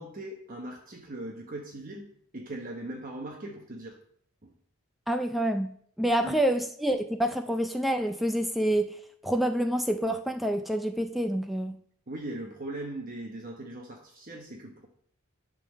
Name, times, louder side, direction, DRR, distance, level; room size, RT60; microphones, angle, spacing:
voice 1, 0.0-2.1 2.3-4.0 4.4-4.5 6.2-6.4 12.1-14.9, right 1 dB, 40° right, 1.0 m, -39 dB
voice 2, 5.1-5.7 6.0-8.9 9.2-11.8, right 1 dB, ahead, 0.4 m, -27 dB
11.0 x 3.8 x 6.2 m
head